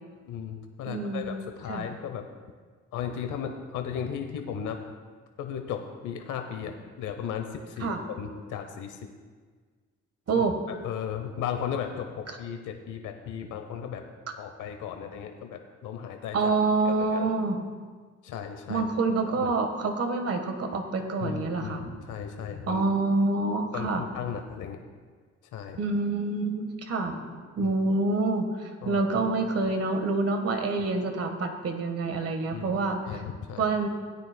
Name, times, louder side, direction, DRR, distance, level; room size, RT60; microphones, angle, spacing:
voice 1, 0.3-2.2 2.9-4.8 5.4-9.0 10.3-10.4 10.8-14.0 14.4-16.5 16.9-17.3 18.2-18.8 19.4-19.5 21.2-22.8 23.7-24.8 25.5-25.8 27.6-27.7 28.8-29.0 32.5-33.7, left 8 dB, 85° left, 5 dB, 0.8 m, -35 dB
voice 2, 0.8-1.4 1.7-1.9 7.8-8.0 10.3-10.5 16.3-17.6 18.7-21.9 22.7-24.0 25.8-33.2 33.6-33.9, right 3 dB, 50° right, 5 dB, 1.4 m, -27 dB
17.5 x 9.3 x 2.2 m, 1.5 s
cardioid pair, 90°, 30 cm